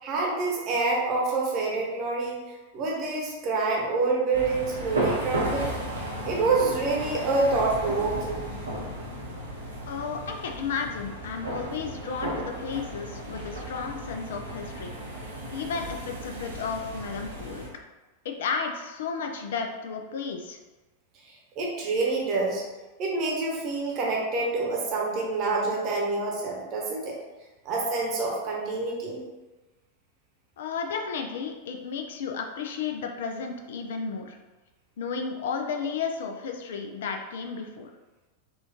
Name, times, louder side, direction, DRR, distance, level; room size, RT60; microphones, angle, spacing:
voice 1, 0.0-2.4 2.7-5.7 6.2-8.5 21.6-22.6 23.0-27.2 27.6-29.2, right 3 dB, 35° right, -2 dB, 0.9 m, -27 dB
sound 1, 4.3-17.7, right 1 dB, 75° right, 0.8 m, -34 dB
voice 2, 9.9-14.9 15.5-17.6 18.2-20.6 30.6-34.4 35.0-37.9, left 5 dB, 60° left, 4 dB, 0.4 m, -33 dB
4.2 x 2.3 x 2.8 m, 1.2 s
figure-of-eight pair, 90°, 0 cm